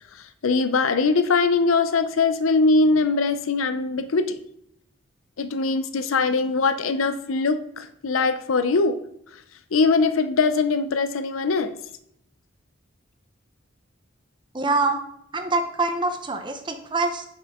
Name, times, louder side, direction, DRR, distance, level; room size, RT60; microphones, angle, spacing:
voice 1, 0.1-4.4 5.4-9.0 9.7-11.8, left 4 dB, 80° left, 10 dB, 0.5 m, -22 dB
voice 2, 14.5-15.0 15.3-17.3, right 3 dB, 25° right, 6 dB, 0.7 m, -25 dB
7.7 x 5.5 x 3.6 m, 0.73 s
head